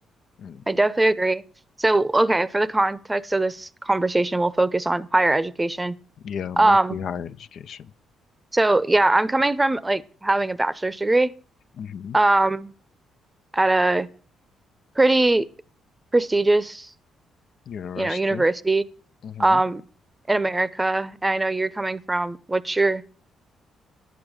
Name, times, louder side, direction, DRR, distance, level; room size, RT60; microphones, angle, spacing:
voice 1, 0.7-1.4 1.8-6.0 6.6-7.0 8.5-11.3 12.1-12.7 13.5-14.1 15.0-15.5 16.1-16.9 17.9-18.8 19.4-19.8 20.3-23.0, right 2 dB, 15° right, 0.7 m, -21 dB
voice 2, 6.2-7.9 11.8-12.2 17.7-18.4 19.2-19.6, left 7 dB, 65° left, 0.5 m, -34 dB
10.5 x 8.9 x 6.4 m
cardioid pair, 90°, 0 cm